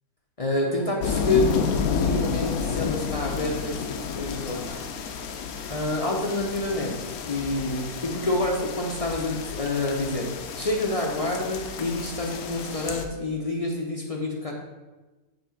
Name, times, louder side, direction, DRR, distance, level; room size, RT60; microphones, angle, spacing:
voice 1, 0.4-3.8 4.2-4.8 5.7-7.0 7.3-10.3 10.6-14.5, left 2 dB, 45° left, -1 dB, 0.4 m, -27 dB
sound 1, 1.0-13.1, left 6 dB, 75° left, 1.0 m, -31 dB
7.6 x 2.8 x 5.7 m, 1.2 s
omnidirectional pair, 1.6 m